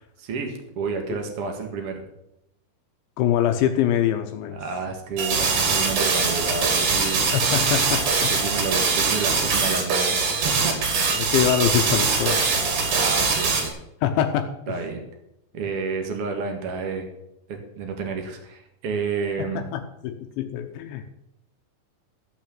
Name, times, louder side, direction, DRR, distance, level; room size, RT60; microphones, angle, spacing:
voice 1, 0.2-2.0 4.5-7.2 8.3-10.7 13.0-13.7 14.7-15.0 15.5-17.1 17.5-19.7, right 4 dB, 75° right, 3 dB, 1.3 m, -30 dB
voice 2, 3.2-4.6 7.3-8.4 11.2-12.6 14.0-14.8 19.4-21.1, left 10 dB, 75° left, 6 dB, 2.9 m, -24 dB
sound 1, 5.2-13.7, right 4 dB, 55° right, 3.9 m, -22 dB
14.5 x 6.2 x 8.7 m, 0.82 s
omnidirectional pair, 5.7 m